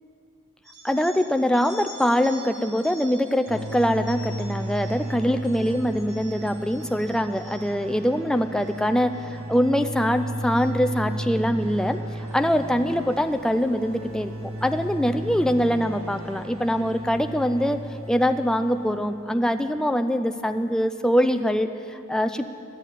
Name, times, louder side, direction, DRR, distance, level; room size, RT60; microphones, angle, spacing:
sound 1, 0.6-7.9 8.4-8.8 9.1-9.6 10.0-11.3 12.3-12.5 13.5-13.6 14.6-14.7 15.1-15.2 15.7-16.0, right 1 dB, 15° right, 1.6 m, -47 dB
voice 1, 0.8-17.8 18.1-22.5, equal, 5° left, 7 dB, 0.3 m, -23 dB
sound 2, 3.5-19.4, right 1 dB, 65° right, 1.4 m, -35 dB
12.0 x 7.4 x 10.0 m, 2.8 s
head